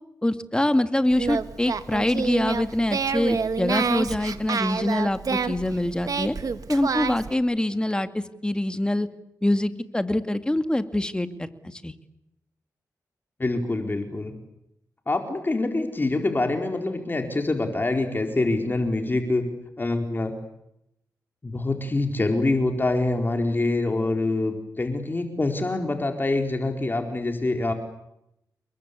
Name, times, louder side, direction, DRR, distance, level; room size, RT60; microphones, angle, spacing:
voice 1, 0.2-6.3 6.7-9.1 9.4-11.9, left 1 dB, 15° left, 10 dB, 2.2 m, -25 dB
Singing, 1.1-7.3, right 5 dB, 65° right, 1.9 m, -28 dB
voice 2, 13.4-14.3 15.1-19.4 19.8-20.3 21.4-27.7, left 2 dB, 30° left, 5 dB, 4.4 m, -25 dB
30.0 x 22.5 x 8.4 m, 0.80 s
cardioid pair, 85°, 7 cm